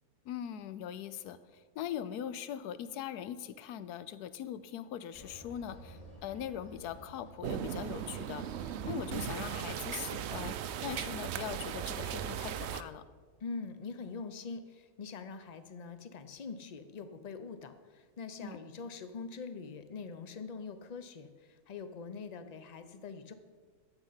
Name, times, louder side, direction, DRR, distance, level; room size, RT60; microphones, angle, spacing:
voice 1, 0.3-13.0 18.4-18.6, left 10 dB, 80° left, 14 dB, 1.2 m, -41 dB
sound 1, 5.1-11.5, equal, 25° left, 2.4 m, -55 dB
sound 2, 7.4-12.8, right 9 dB, 70° right, 0.6 m, -37 dB
voice 2, 13.4-23.3, left 4 dB, 60° left, 10 dB, 0.4 m, -44 dB
12.0 x 8.0 x 5.6 m, 1.5 s
omnidirectional pair, 1.7 m